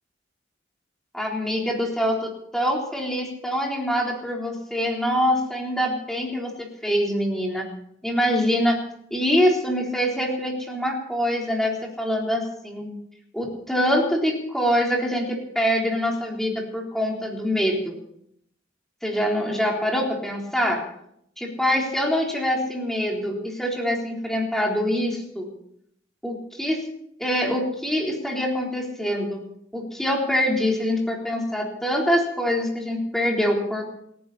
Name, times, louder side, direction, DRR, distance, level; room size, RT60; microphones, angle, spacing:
voice 1, 1.1-6.5 6.8-7.7 8.0-8.8 9.1-12.9 13.3-17.9 19.0-20.8 21.4-25.5 26.2-26.8 27.2-29.4 29.7-33.9, equal, ahead, -1 dB, 4.0 m, -24 dB
28.5 x 11.0 x 4.3 m, 0.72 s
head